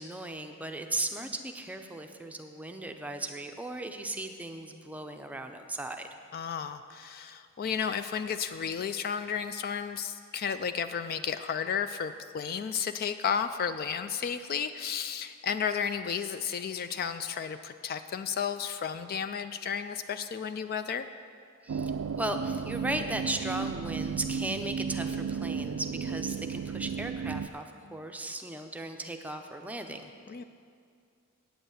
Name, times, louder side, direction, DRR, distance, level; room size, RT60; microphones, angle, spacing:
voice 1, 0.0-6.1 21.6-21.9 22.2-30.1, right 1 dB, 5° right, 5 dB, 0.6 m, -36 dB
voice 2, 6.3-21.1 30.3-30.4, left 7 dB, 40° left, 10 dB, 0.3 m, -33 dB
sound 1, 21.7-27.5, right 6 dB, 85° right, 0.4 m, -34 dB
9.0 x 7.9 x 8.0 m, 2.3 s
head